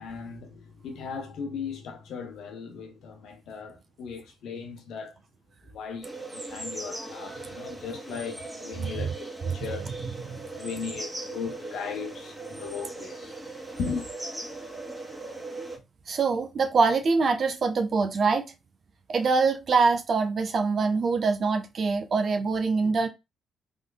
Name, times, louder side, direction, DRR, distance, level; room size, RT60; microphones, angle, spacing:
voice 1, 0.0-5.2 5.6-9.9 10.5-13.3 13.8-14.1, left 5 dB, 70° left, 1.1 m, -37 dB
sound 1, 6.0-15.8, right 2 dB, 10° right, 1.7 m, -39 dB
voice 2, 10.0-10.4 16.1-18.5 19.1-23.1, right 4 dB, 55° right, 0.9 m, -24 dB
3.5 x 3.5 x 2.3 m
supercardioid pair, 55°, 0 cm